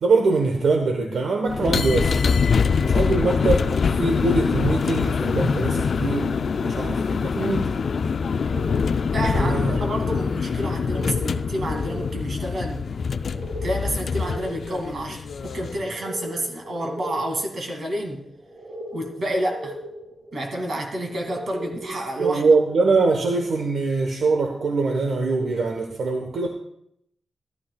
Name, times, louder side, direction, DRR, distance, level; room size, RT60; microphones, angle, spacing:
voice 1, 0.0-2.2 2.8-7.7 9.3-9.8 22.2-26.5, right 3 dB, 75° right, 3 dB, 1.1 m, -23 dB
sound 1, 1.5-15.9, left 5 dB, 55° left, 0.4 m, -24 dB
sound 2, 8.3-21.8, equal, 35° right, 1.9 m, -39 dB
voice 2, 9.1-12.9 13.6-18.2 18.9-19.8 20.3-22.5, right 1 dB, 50° right, 2 dB, 2.3 m, -29 dB
14.5 x 12.0 x 2.3 m, 0.75 s
wide cardioid pair, 165°, 0 cm